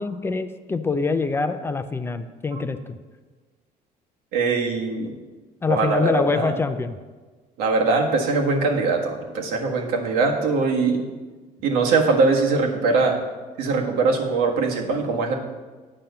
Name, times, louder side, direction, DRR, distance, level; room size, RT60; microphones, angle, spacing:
voice 1, 0.0-3.0 5.6-7.0, left 4 dB, 15° left, 9 dB, 0.4 m, -25 dB
voice 2, 4.3-5.1 5.7-6.6 7.6-11.1 11.6-13.2 13.6-15.3, right 4 dB, 90° right, 1 dB, 1.5 m, -22 dB
8.9 x 5.7 x 6.7 m, 1.3 s
cardioid pair, 150°, 15 cm